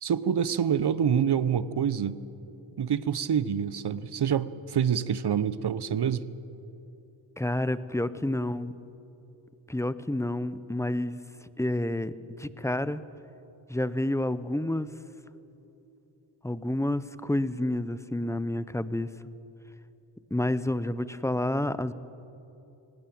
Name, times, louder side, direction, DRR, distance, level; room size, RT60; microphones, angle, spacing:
voice 1, 0.0-2.2 2.8-6.2, right 8 dB, 55° right, 16 dB, 1.0 m, -26 dB
voice 2, 7.4-8.7 9.7-11.2 11.6-13.0 13.7-14.9 16.4-19.1 20.3-21.9, left 1 dB, 5° left, 14 dB, 1.0 m, -29 dB
18.5 x 17.5 x 9.0 m, 2.9 s
supercardioid pair, 40°, 49 cm